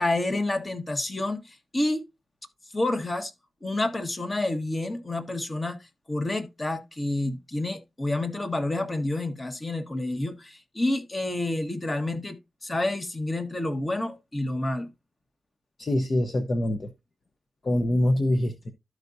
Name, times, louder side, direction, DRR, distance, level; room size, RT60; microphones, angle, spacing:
voice 1, 0.0-2.0 2.7-3.3 3.6-5.8 6.1-14.9, left 2 dB, 30° left, 1.4 m, -29 dB
voice 2, 15.8-16.9 17.6-18.7, left 1 dB, 45° left, 0.9 m, -24 dB
13.0 x 4.8 x 2.7 m
cardioid pair, 75°, 0 cm